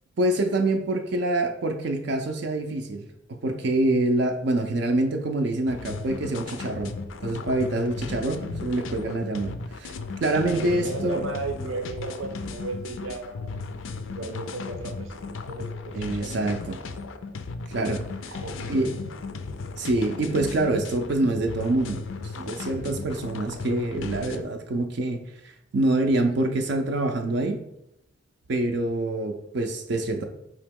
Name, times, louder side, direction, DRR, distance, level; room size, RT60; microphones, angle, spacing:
voice 1, 0.2-7.0 7.2-10.0 10.2-11.2 15.9-16.8 17.7-18.3 18.7-18.9 19.8-27.6 28.5-30.2, right 2 dB, 60° right, 4 dB, 0.4 m, -26 dB
sound 1, 5.7-24.4, left 4 dB, 80° left, 0.4 m, -36 dB
voice 2, 10.5-13.6 14.0-16.5 16.9-17.1 18.3-19.1, right 3 dB, 90° right, 4 dB, 0.8 m, -36 dB
4.9 x 2.9 x 3.5 m, 0.82 s
head